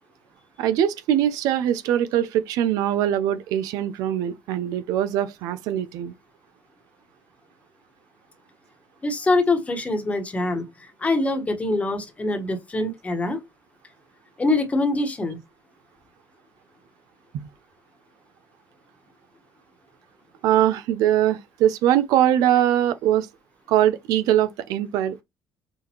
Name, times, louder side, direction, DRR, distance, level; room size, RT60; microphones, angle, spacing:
voice 1, 0.6-6.1 17.3-17.4 20.4-23.3 23.7-25.2, right 11 dB, 90° right, 0.5 m, -22 dB
voice 2, 9.0-13.4 14.4-15.4, left 2 dB, 25° left, 1.3 m, -24 dB
6.3 x 2.5 x 3.0 m
cardioid pair, 110°, 6 cm